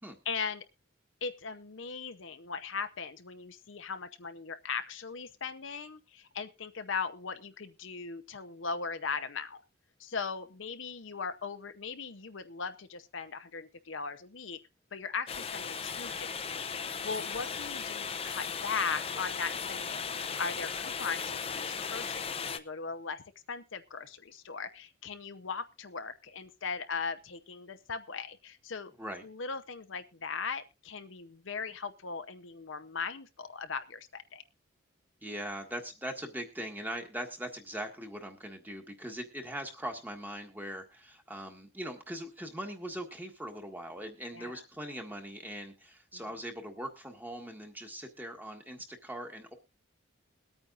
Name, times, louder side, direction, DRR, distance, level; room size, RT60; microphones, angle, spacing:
voice 1, 0.3-0.7 1.2-9.6 10.0-14.6 14.9-16.5 17.0-23.2 23.5-28.9 29.2-34.4 44.3-44.6 46.1-46.4, left 5 dB, 70° left, 10 dB, 0.8 m, -38 dB
sound 1, 15.3-22.6, left 6 dB, 30° left, 0.7 m, -37 dB
voice 2, 35.2-49.5, equal, 10° right, 4 dB, 1.6 m, -41 dB
22.0 x 8.9 x 2.6 m, 0.28 s
head